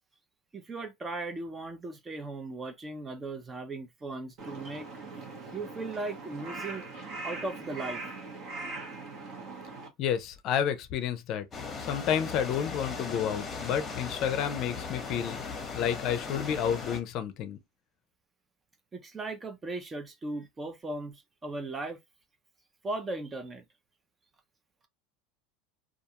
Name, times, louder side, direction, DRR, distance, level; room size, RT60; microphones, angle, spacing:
voice 1, 0.5-4.9 5.5-6.9 7.2-8.1 18.9-22.0 22.8-23.6, right 2 dB, 20° right, 0.5 m, -37 dB
Crow, 4.4-9.9, right 3 dB, 45° right, 0.9 m, -41 dB
voice 2, 10.0-11.5 11.8-15.4 15.7-17.6, left 8 dB, 50° left, 0.5 m, -30 dB
sound 1, 11.5-17.0, left 5 dB, 20° left, 0.9 m, -38 dB
2.4 x 2.3 x 2.8 m
supercardioid pair, 120°, 0 cm